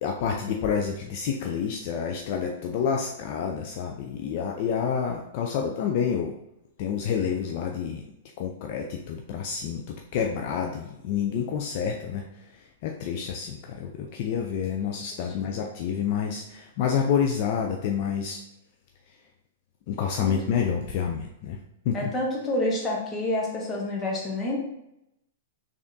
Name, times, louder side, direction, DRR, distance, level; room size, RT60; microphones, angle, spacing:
voice 1, 0.0-6.3 6.8-8.1 8.4-18.4 19.9-21.6 21.9-22.1, left 7 dB, 45° left, 2 dB, 0.4 m, -28 dB
voice 2, 21.9-24.6, left 1 dB, 15° left, -2 dB, 0.8 m, -28 dB
3.6 x 3.5 x 2.6 m, 0.83 s
hypercardioid pair, 155°, 0 cm